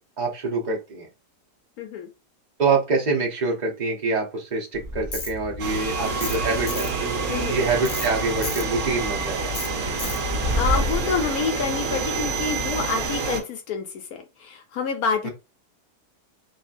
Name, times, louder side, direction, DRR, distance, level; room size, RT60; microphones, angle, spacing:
voice 1, 0.2-1.1 2.6-6.9 7.5-9.5 15.2-15.3, right 3 dB, 40° right, 0 dB, 0.6 m, -25 dB
voice 2, 1.8-2.1 7.3-7.6 10.5-15.3, left 5 dB, 70° left, 5 dB, 1.1 m, -27 dB
Train, 4.7-13.1, left 1 dB, 10° left, 0.9 m, -32 dB
Tools, 5.1-5.3 6.2-6.4 6.7-6.9 7.8-8.1 8.4-8.6 9.5-9.7 10.0-10.2, left 3 dB, 45° left, 0.7 m, -32 dB
sound 1, 5.6-13.4, right 4 dB, 65° right, 1.1 m, -28 dB
2.8 x 2.8 x 2.4 m, 0.27 s
omnidirectional pair, 1.8 m